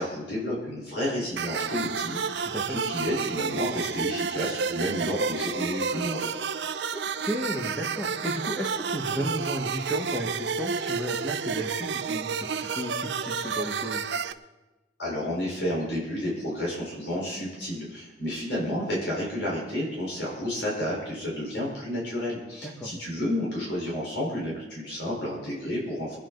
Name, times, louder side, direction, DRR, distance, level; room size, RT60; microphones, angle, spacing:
voice 1, 0.0-6.3 15.0-26.2, left 1 dB, 70° left, -4 dB, 4.6 m, -31 dB
sound 1, 1.4-14.3, right 5 dB, 70° right, 0.6 m, -30 dB
voice 2, 2.4-2.8 6.9-14.0 22.6-22.9, equal, 10° left, -3 dB, 1.6 m, -34 dB
23.0 x 10.0 x 4.0 m, 1.1 s
head